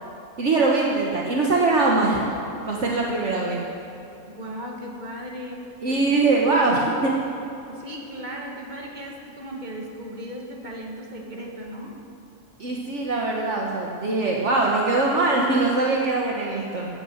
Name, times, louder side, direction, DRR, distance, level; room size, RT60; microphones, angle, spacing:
voice 1, 0.4-2.3 2.7-3.7 5.8-7.1 12.6-16.9, right 3 dB, 55° right, -2 dB, 1.5 m, -22 dB
voice 2, 4.3-5.6 5.9-6.1 7.7-12.0, equal, 30° right, -1 dB, 1.9 m, -36 dB
15.5 x 8.9 x 7.9 m, 2.8 s
omnidirectional pair, 1.5 m